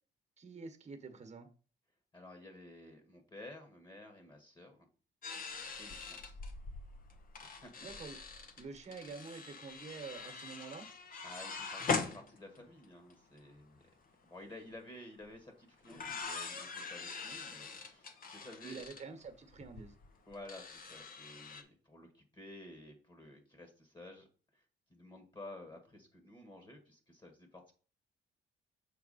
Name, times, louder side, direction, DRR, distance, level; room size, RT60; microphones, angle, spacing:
voice 1, 0.4-1.5 7.8-8.2 8.6-10.8 18.6-19.9, right 4 dB, 35° right, 7 dB, 1.3 m, -47 dB
voice 2, 2.1-4.9 5.8-6.2 7.4-7.8 11.2-13.8 14.2-18.8 20.3-24.3 24.5-24.6 24.9-27.7, left 1 dB, 25° left, 5 dB, 1.7 m, -53 dB
Sample Screen Doors, 5.2-12.8 13.1-13.2 13.4-13.8 15.2-15.3 15.8-21.6, left 4 dB, 45° left, 1.0 m, -42 dB
7.0 x 4.2 x 4.2 m, 0.39 s
cardioid pair, 90°, 20 cm